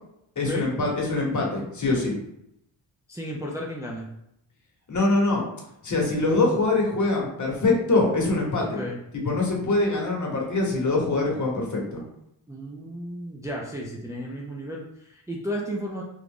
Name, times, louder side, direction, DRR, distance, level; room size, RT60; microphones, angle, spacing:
voice 1, 0.4-2.2 4.9-5.5 5.8-8.8 9.2-12.0, left 2 dB, 40° left, -1 dB, 1.1 m, -24 dB
voice 2, 3.1-4.1 8.6-9.0 12.5-16.0, equal, 5° right, -3 dB, 0.4 m, -33 dB
3.0 x 2.4 x 3.6 m, 0.79 s
cardioid pair, 85°, 45 cm